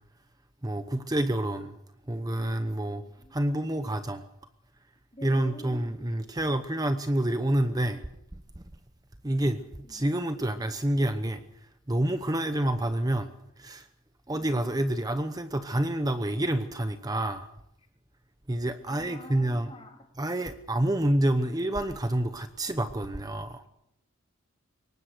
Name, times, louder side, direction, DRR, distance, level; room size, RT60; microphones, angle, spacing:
voice 1, 0.6-1.8 2.1-3.0 3.3-4.2 5.2-8.0 8.6-8.7 9.2-9.6 9.9-13.3 13.6-13.9 14.3-17.5 18.5-19.7 20.2-23.7, right 1 dB, 20° right, 0.9 m, -28 dB
voice 2, 2.9-3.7 5.1-5.8 9.8-10.2 14.3-14.5 18.9-20.0, left 1 dB, 30° left, 3.1 m, -47 dB
23.0 x 19.0 x 6.7 m
head